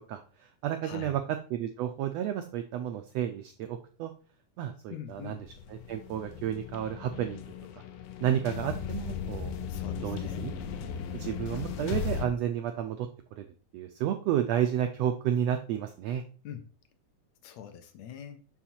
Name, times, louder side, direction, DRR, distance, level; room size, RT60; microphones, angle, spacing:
voice 1, 0.1-1.2 1.5-4.1 4.6-5.4 5.7-7.4 7.7-7.8 8.2-9.5 10.0-10.5 11.1-13.1 13.4-13.5 13.7-16.2, right 10 dB, 85° right, 7 dB, 1.5 m, -31 dB
voice 2, 0.8-1.2 4.9-5.4 9.7-10.6 16.4-16.7 17.4-18.4, left 9 dB, 75° left, 9 dB, 1.7 m, -43 dB
sound 1, 5.2-12.3, left 7 dB, 90° left, 2.4 m, -37 dB
7.2 x 5.8 x 4.3 m, 0.40 s
omnidirectional pair, 3.6 m